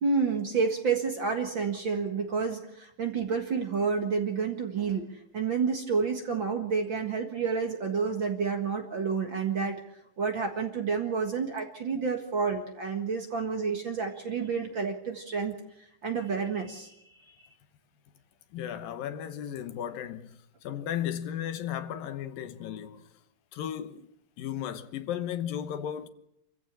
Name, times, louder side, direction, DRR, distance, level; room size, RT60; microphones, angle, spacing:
voice 1, 0.0-5.1 5.3-9.8 10.2-16.9, right 5 dB, 45° right, 1.9 m, -29 dB
voice 2, 18.5-23.1 23.5-24.1 24.4-26.1, left 10 dB, 80° left, 2.9 m, -35 dB
27.0 x 15.5 x 7.5 m
omnidirectional pair, 4.0 m